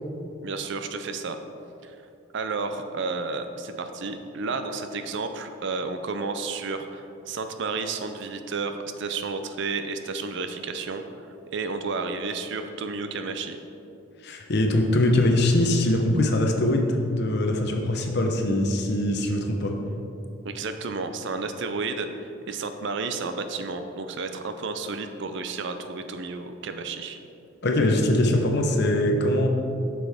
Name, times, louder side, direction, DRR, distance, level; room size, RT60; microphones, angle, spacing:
voice 1, 0.4-1.4 1.8-2.0 2.3-13.6 20.4-27.2, right 4 dB, 55° right, 8 dB, 0.5 m, -32 dB
voice 2, 14.2-19.8 27.6-29.5, left 1 dB, 50° left, 3 dB, 0.8 m, -22 dB
7.9 x 6.2 x 3.5 m, 2.7 s
head